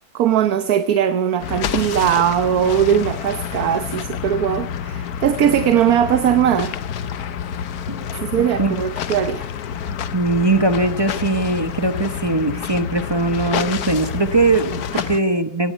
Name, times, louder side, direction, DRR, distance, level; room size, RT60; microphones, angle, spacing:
voice 1, 0.1-6.7 8.2-9.5 14.9-15.0, right 9 dB, 65° right, 10 dB, 1.3 m, -19 dB
sound 1, 1.4-15.2, left 8 dB, 65° left, 1.3 m, -28 dB
voice 2, 8.4-8.8 10.1-15.7, right 2 dB, 20° right, 9 dB, 0.7 m, -20 dB
18.5 x 17.0 x 4.3 m, 0.77 s
omnidirectional pair, 1.9 m